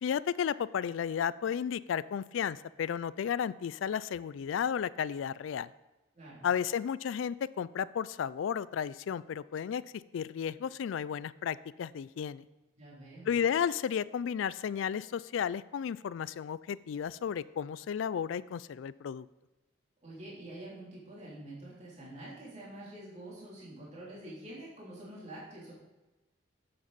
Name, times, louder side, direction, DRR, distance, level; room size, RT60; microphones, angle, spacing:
voice 1, 0.0-5.7 6.4-9.8 10.1-12.5 13.3-19.3, left 8 dB, 75° left, 19 dB, 0.3 m, -33 dB
voice 2, 12.8-13.3 20.0-25.7, right 1 dB, 35° right, -7 dB, 3.1 m, -46 dB
8.7 x 7.9 x 4.1 m, 1.1 s
head